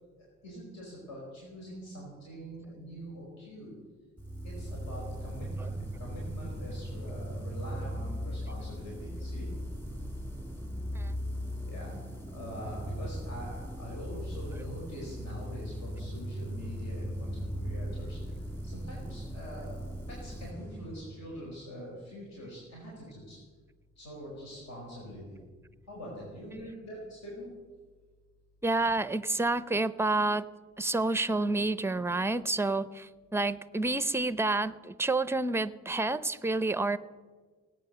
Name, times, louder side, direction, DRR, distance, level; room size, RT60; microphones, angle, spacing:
voice 1, 0.2-3.7 4.4-9.5 11.6-23.4 23.9-25.4 25.9-27.5, equal, 60° left, -3 dB, 4.9 m, -44 dB
sound 1, 4.2-21.7, equal, 5° left, 2.0 m, -38 dB
voice 2, 28.6-30.5 30.8-37.0, right 2 dB, 10° right, 15 dB, 0.6 m, -29 dB
17.5 x 9.1 x 6.7 m, 1.5 s
cardioid pair, 90°, 30 cm